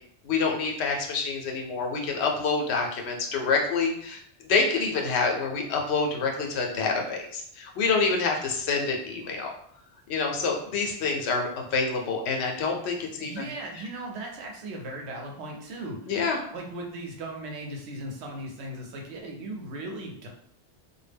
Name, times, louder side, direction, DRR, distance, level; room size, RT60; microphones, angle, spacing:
voice 1, 0.2-4.2 4.5-9.5 10.1-13.4 16.1-16.4, left 4 dB, 75° left, 1 dB, 0.8 m, -27 dB
voice 2, 13.2-16.1 16.5-20.3, right 1 dB, 80° right, 1 dB, 0.9 m, -37 dB
2.2 x 2.1 x 3.3 m, 0.65 s
omnidirectional pair, 1.1 m